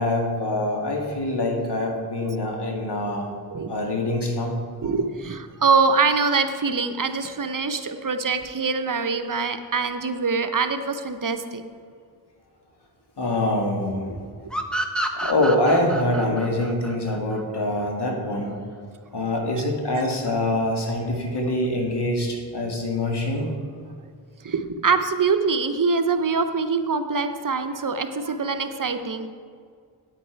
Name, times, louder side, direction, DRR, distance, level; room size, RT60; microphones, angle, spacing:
voice 1, 0.0-3.3 3.7-4.6 13.2-14.2 15.1-18.5 19.1-23.5, left 1 dB, 75° left, 0 dB, 2.0 m, -24 dB
voice 2, 4.8-11.6 15.2-15.3 17.2-17.3 19.6-19.7 24.4-29.3, right 4 dB, 50° right, 8 dB, 0.8 m, -24 dB
sound 1, 14.5-17.9, right 1 dB, ahead, 1.0 m, -29 dB
9.1 x 9.0 x 4.6 m, 2.1 s
cardioid pair, 50°, 41 cm